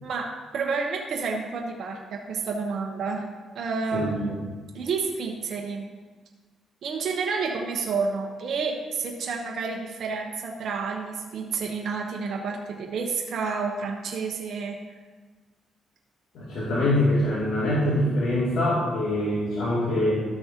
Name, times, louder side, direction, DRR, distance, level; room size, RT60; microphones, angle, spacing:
voice 1, 0.0-3.2 3.5-4.4 4.7-5.9 6.8-14.8, right 4 dB, 65° right, 0 dB, 1.0 m, -30 dB
voice 2, 3.9-4.4 16.3-20.2, left 1 dB, 70° left, -9 dB, 2.6 m, -24 dB
13.0 x 6.3 x 2.9 m, 1.4 s
cardioid pair, 90°, 0 cm